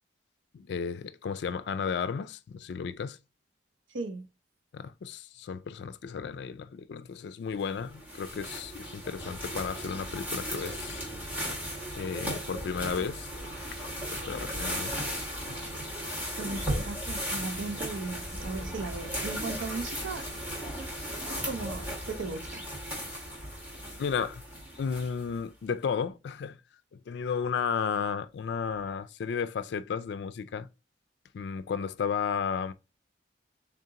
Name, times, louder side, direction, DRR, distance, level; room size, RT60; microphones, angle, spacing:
voice 1, 0.5-3.2 4.7-11.0 12.0-13.3 13.7-13.8 14.1-15.1 15.5-15.6 24.0-24.4 24.8-26.6 27.1-30.7 31.3-32.7, left 6 dB, 65° left, 0.3 m, -33 dB
voice 2, 3.9-4.3 16.4-20.3 21.3-22.6, right 3 dB, 85° right, 0.6 m, -37 dB
sound 1, 7.6-25.4, equal, 10° right, 1.2 m, -36 dB
3.6 x 2.8 x 3.7 m
head